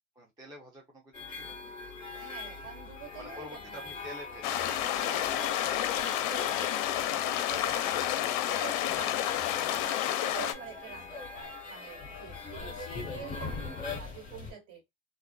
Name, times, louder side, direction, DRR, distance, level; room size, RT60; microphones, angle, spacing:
voice 1, 0.2-1.6 3.2-5.0, equal, 10° right, 0.5 m, -48 dB
sound 1, 1.1-14.5, left 4 dB, 20° left, 1.2 m, -41 dB
voice 2, 2.2-4.1 4.9-9.2 9.6-14.8, right 7 dB, 50° right, 1.8 m, -47 dB
sound 2, 4.4-10.5, left 12 dB, 55° left, 0.5 m, -30 dB
2.4 x 2.4 x 2.2 m
supercardioid pair, 120°, 43 cm